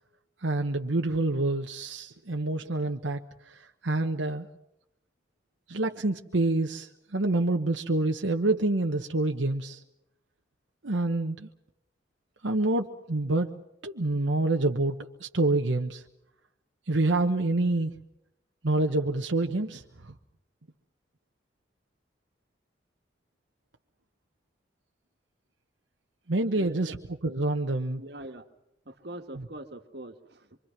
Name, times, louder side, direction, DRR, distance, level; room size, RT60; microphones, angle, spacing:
voice 1, 0.4-4.5 5.7-9.8 10.8-11.5 12.4-13.5 13.8-16.0 16.9-17.9 18.6-20.1 26.3-27.0 27.2-28.0 29.3-29.4, right 2 dB, 85° right, 3 dB, 1.1 m, -27 dB
voice 2, 26.6-27.0 28.0-28.5 28.9-30.6, right 1 dB, 60° right, 7 dB, 1.8 m, -43 dB
25.5 x 25.0 x 6.0 m, 0.85 s
head